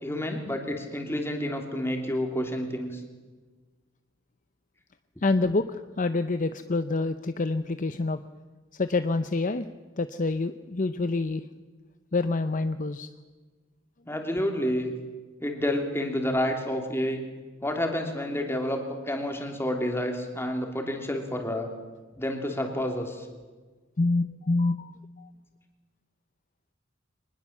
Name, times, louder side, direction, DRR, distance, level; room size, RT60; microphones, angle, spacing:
voice 1, 0.0-3.0 14.1-14.9 15.4-17.2 17.6-21.7 22.2-23.3, left 1 dB, 10° left, 3 dB, 3.0 m, -29 dB
voice 2, 5.2-8.2 8.8-9.6 10.0-11.4 12.1-13.1 24.0-24.9 25.2-25.3, left 3 dB, 40° left, 11 dB, 0.6 m, -27 dB
24.0 x 20.0 x 7.3 m, 1.4 s
head